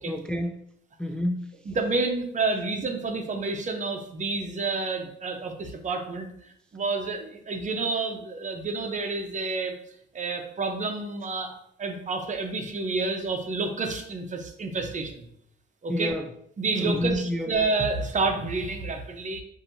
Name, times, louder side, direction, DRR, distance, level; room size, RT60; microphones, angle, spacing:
voice 1, 0.1-0.7 1.0-1.5 15.9-16.3 16.8-17.5, left 1 dB, 5° left, 4 dB, 0.3 m, -28 dB
voice 2, 1.7-6.3 6.7-9.7 10.1-11.5 11.8-15.3 15.8-16.1 16.6-19.4, right 3 dB, 40° right, 5 dB, 0.8 m, -29 dB
7.1 x 2.7 x 2.7 m, 0.71 s
cardioid pair, 90°, 20 cm